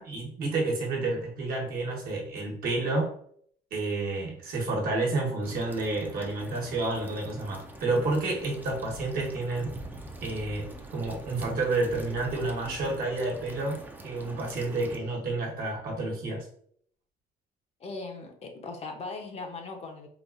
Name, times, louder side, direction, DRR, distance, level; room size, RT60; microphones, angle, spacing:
voice 1, 0.0-3.1 3.7-9.7 10.2-10.7 10.9-13.8 14.0-16.4, right 2 dB, 60° right, -2 dB, 1.2 m, -30 dB
sound 1, 5.4-15.0, right 1 dB, 10° right, 0.5 m, -44 dB
voice 2, 17.8-20.1, left 3 dB, 40° left, 3 dB, 0.7 m, -39 dB
4.0 x 2.4 x 2.4 m, 0.62 s
cardioid pair, 110°, 17 cm